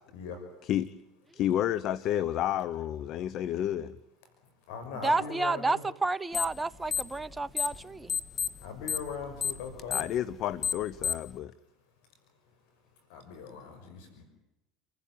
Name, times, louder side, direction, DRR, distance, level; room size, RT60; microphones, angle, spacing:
voice 1, 0.1-0.5 4.4-5.8 8.6-10.1 13.1-14.2, left 5 dB, 75° left, 5.7 m, -40 dB
voice 2, 1.3-4.0 9.9-11.5, left 11 dB, 55° left, 1.0 m, -30 dB
voice 3, 5.0-8.1, right 3 dB, 15° right, 0.9 m, -30 dB
sound 1, 6.3-6.6 6.9-7.8 8.1-11.3, left 7 dB, 30° left, 1.8 m, -30 dB
29.0 x 15.5 x 9.4 m
supercardioid pair, 100°, 0 cm